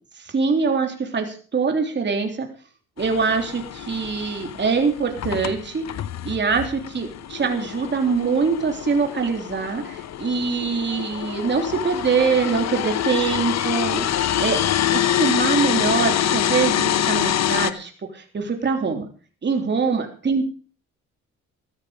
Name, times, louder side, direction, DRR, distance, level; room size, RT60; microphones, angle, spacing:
voice 1, 0.2-2.5 3.0-5.8 6.2-14.6 14.9-19.0 19.4-20.4, right 5 dB, 35° right, 4 dB, 3.3 m, -23 dB
sound 1, 3.0-17.7, left 11 dB, 60° left, 1.0 m, -25 dB
14.0 x 13.5 x 5.1 m, 0.40 s
cardioid pair, 90°, 30 cm